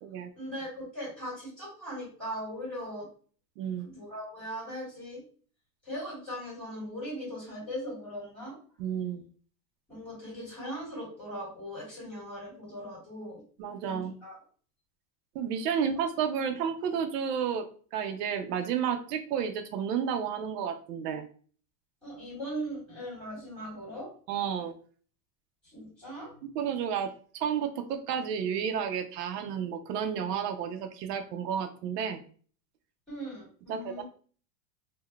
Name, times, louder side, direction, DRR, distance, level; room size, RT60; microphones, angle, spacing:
voice 1, 0.3-3.1 3.8-5.2 5.8-8.5 9.9-13.4 13.8-14.3 22.0-24.1 25.7-26.3 33.1-34.0, equal, ahead, -7 dB, 1.4 m, -39 dB
voice 2, 3.6-3.9 8.8-9.2 13.6-14.1 15.3-17.7 17.9-21.3 24.3-24.7 26.4-32.2 33.7-34.0, right 7 dB, 90° right, 7 dB, 0.6 m, -31 dB
3.7 x 2.2 x 2.2 m, 0.44 s
supercardioid pair, 175°, 47 cm